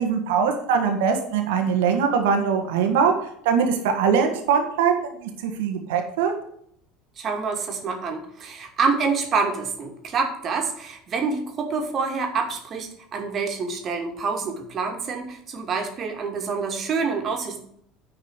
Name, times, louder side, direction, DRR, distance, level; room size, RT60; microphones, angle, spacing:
voice 1, 0.0-3.1 3.4-6.3, right 6 dB, 70° right, 4 dB, 1.8 m, -22 dB
voice 2, 7.2-17.6, right 4 dB, 40° right, 2 dB, 2.4 m, -27 dB
10.0 x 4.8 x 6.7 m, 0.69 s
figure-of-eight pair, 70°, 0 cm